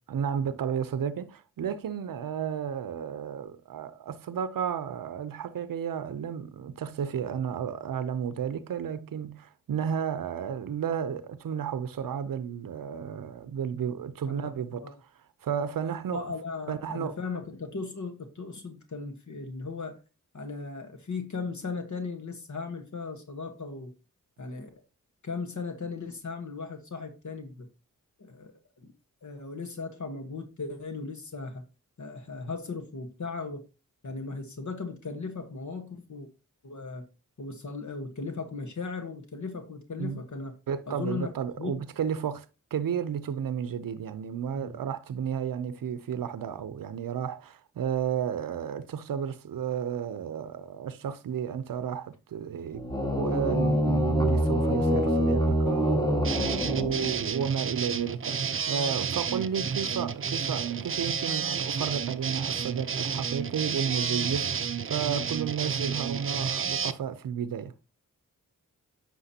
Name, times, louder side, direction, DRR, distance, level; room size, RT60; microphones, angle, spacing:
voice 1, 0.1-15.1 15.4-16.2 16.7-17.2 40.0-40.2 40.7-42.5 42.7-52.8 53.2-67.7, right 8 dB, 80° right, 0.6 m, -32 dB
voice 2, 14.2-14.9 16.1-20.0 20.3-23.9 24.4-24.8 25.2-27.7 28.2-28.9 29.2-31.6 32.0-33.6 34.0-36.3 36.6-37.1 37.4-40.6 40.9-41.8 44.5-44.8, left 4 dB, 60° left, 1.3 m, -37 dB
sound 1, 52.7-57.5, equal, 10° left, 1.7 m, -25 dB
sound 2, 56.2-66.9, right 6 dB, 40° right, 0.5 m, -31 dB
9.9 x 5.9 x 2.8 m
cardioid pair, 55°, 33 cm